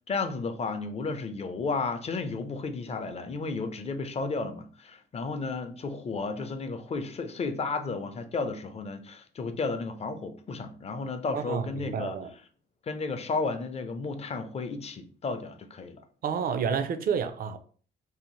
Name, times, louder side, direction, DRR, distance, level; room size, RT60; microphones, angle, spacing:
voice 1, 0.1-12.2 12.9-16.0, left 4 dB, 30° left, 0.4 m, -33 dB
voice 2, 11.3-12.3 16.2-17.6, right 7 dB, 50° right, 0.4 m, -29 dB
2.8 x 2.0 x 3.0 m
cardioid pair, 90°, 20 cm